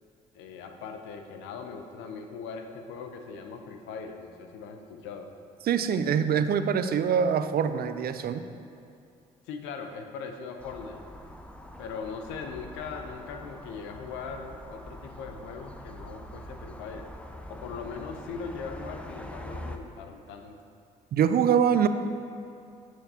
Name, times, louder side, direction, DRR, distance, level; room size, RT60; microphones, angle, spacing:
voice 1, 0.3-5.3 9.4-11.0 11.8-17.1 17.5-20.6, left 5 dB, 75° left, 5 dB, 0.7 m, -40 dB
voice 2, 5.6-8.4 21.1-21.9, right 7 dB, 50° right, 11 dB, 0.5 m, -24 dB
sound 1, 10.6-19.8, left 1 dB, 5° left, 0.7 m, -44 dB
13.0 x 6.3 x 2.8 m, 2.5 s
hypercardioid pair, 50°, 19 cm